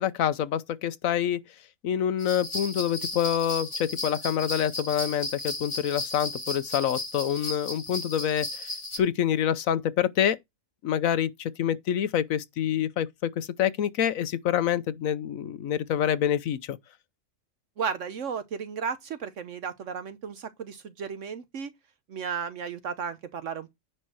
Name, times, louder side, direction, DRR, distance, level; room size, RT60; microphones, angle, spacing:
voice 1, 0.0-1.4 1.8-8.7 9.0-10.4 10.8-16.8, left 9 dB, 85° left, 1.2 m, -27 dB
sound 1, 2.2-9.0, left 2 dB, 20° left, 1.8 m, -35 dB
voice 2, 17.8-21.7 22.1-23.7, right 6 dB, 70° right, 1.2 m, -34 dB
10.0 x 4.4 x 6.3 m
omnidirectional pair, 1.4 m